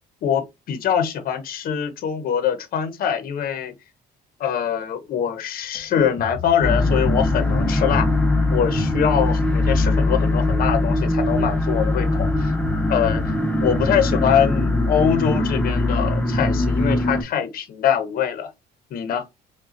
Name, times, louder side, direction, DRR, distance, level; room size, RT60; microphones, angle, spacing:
voice 1, 0.2-3.7 4.4-8.1 8.5-12.5 12.9-13.2 13.6-18.5 18.9-19.2, left 8 dB, 60° left, 0.8 m, -23 dB
Drum kit, 5.7-14.0, left 6 dB, 25° left, 1.3 m, -33 dB
sound 1, 6.6-17.2, left 2 dB, 10° left, 0.7 m, -21 dB
4.8 x 2.3 x 2.8 m
cardioid pair, 110°, 17 cm